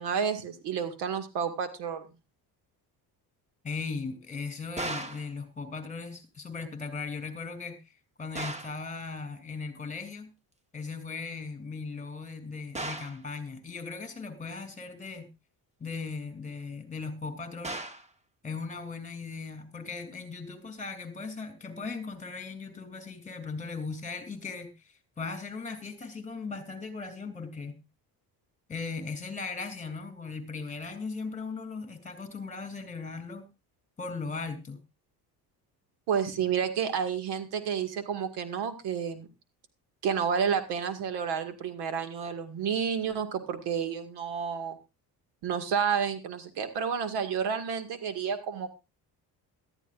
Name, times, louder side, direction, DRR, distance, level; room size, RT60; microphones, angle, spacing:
voice 1, 0.0-2.1 36.1-39.3 40.0-44.8 45.4-48.7, right 7 dB, 75° right, 9 dB, 2.1 m, -30 dB
voice 2, 3.6-7.8 8.2-10.3 10.7-15.3 15.8-17.8 18.4-24.7 25.2-27.8 28.7-33.5 34.0-34.8, left 4 dB, 20° left, 8 dB, 3.0 m, -38 dB
sound 1, 4.8-5.3 8.4-8.8 12.8-13.2 17.6-18.1, right 2 dB, 15° right, 1.2 m, -36 dB
18.0 x 13.0 x 2.5 m, 0.26 s
cardioid pair, 125°, 39 cm